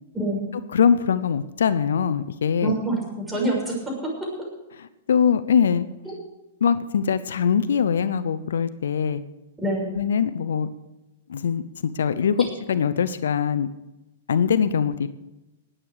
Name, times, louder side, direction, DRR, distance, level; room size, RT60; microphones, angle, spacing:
voice 1, 0.7-2.7 5.1-5.9 6.6-9.2 9.9-10.7 11.3-13.7 14.3-15.1, left 7 dB, 80° left, 14 dB, 0.7 m, -22 dB
voice 2, 2.6-3.9 6.0-6.1 9.6-9.9, right 1 dB, 10° right, -2 dB, 6.2 m, -26 dB
20.5 x 8.9 x 4.9 m, 0.97 s
hypercardioid pair, 125°, 0 cm